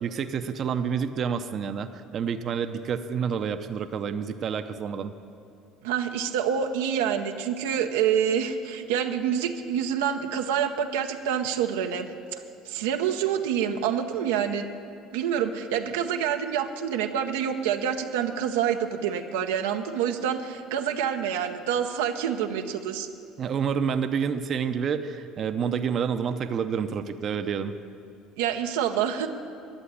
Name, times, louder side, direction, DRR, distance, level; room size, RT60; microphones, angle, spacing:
voice 1, 0.0-5.1 23.4-27.7, right 7 dB, 50° right, 9 dB, 0.6 m, -28 dB
voice 2, 5.8-12.1 12.7-14.7 15.1-23.1 28.4-29.3, right 8 dB, 90° right, 5 dB, 0.7 m, -27 dB
11.5 x 7.5 x 9.8 m, 2.6 s
supercardioid pair, 85°, 0 cm